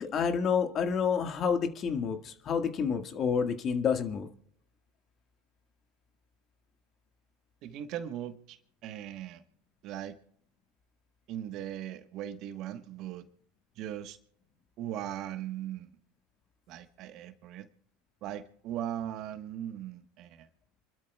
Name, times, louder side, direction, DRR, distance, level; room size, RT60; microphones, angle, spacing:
voice 1, 0.0-4.3, left 6 dB, 40° left, 7 dB, 1.8 m, -29 dB
voice 2, 7.6-9.4 9.8-10.1 11.3-13.2 13.8-14.2 14.8-15.9 16.7-17.7 18.2-20.5, right 11 dB, 55° right, 10 dB, 1.3 m, -39 dB
28.5 x 12.5 x 2.4 m, 0.65 s
hypercardioid pair, 80°, 0 cm